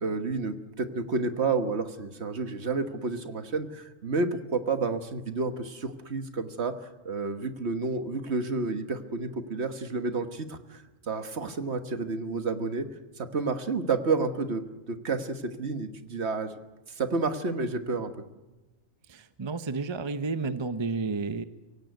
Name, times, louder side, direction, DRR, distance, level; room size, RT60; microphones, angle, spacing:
voice 1, 0.0-6.7 7.1-12.9 13.2-16.5 16.9-18.2, right 4 dB, 55° right, 8 dB, 1.6 m, -30 dB
voice 2, 19.1-21.4, right 4 dB, 25° right, 11 dB, 0.7 m, -31 dB
24.0 x 17.0 x 9.3 m, 1.1 s
omnidirectional pair, 1.3 m